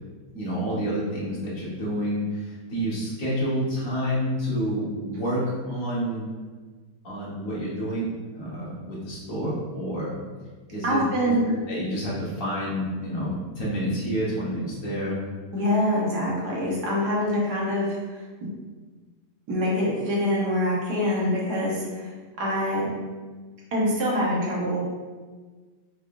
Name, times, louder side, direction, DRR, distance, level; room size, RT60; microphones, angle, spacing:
voice 1, 0.3-6.3 7.0-10.1 10.7-15.2, equal, 55° left, -7 dB, 1.6 m, -29 dB
voice 2, 10.8-11.5 15.5-17.9 19.5-22.1 22.4-22.9 23.7-24.8, left 1 dB, 70° right, -5 dB, 1.6 m, -25 dB
4.9 x 3.4 x 2.5 m, 1.4 s
omnidirectional pair, 1.8 m